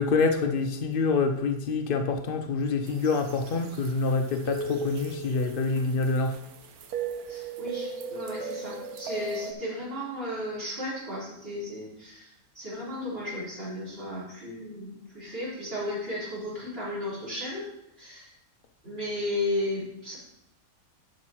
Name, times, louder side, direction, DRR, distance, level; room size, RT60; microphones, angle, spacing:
voice 1, 0.0-6.4, left 4 dB, 90° left, 6 dB, 0.4 m, -26 dB
sound 1, 2.9-9.5, right 3 dB, 65° right, 1.3 m, -37 dB
voice 2, 7.3-12.3 12.5-17.7 18.0-18.3 18.8-20.2, left 1 dB, 35° right, -7 dB, 4.6 m, -34 dB
12.0 x 5.2 x 4.5 m, 0.84 s
omnidirectional pair, 1.8 m